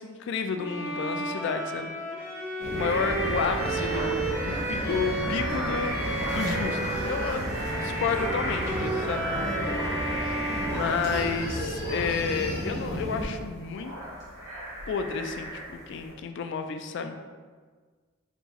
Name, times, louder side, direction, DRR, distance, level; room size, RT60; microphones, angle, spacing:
voice 1, 0.0-1.9 2.7-9.3 10.7-13.9 14.9-15.6 15.9-17.2, left 5 dB, 60° left, 7 dB, 0.3 m, -31 dB
Bowed string instrument, 0.6-11.6, right 2 dB, 10° right, 0.6 m, -33 dB
sound 1, 2.6-13.3, equal, 45° right, 1.3 m, -33 dB
sound 2, 2.8-16.1, right 1 dB, 85° right, 1.3 m, -36 dB
4.5 x 2.0 x 4.1 m, 1.5 s
head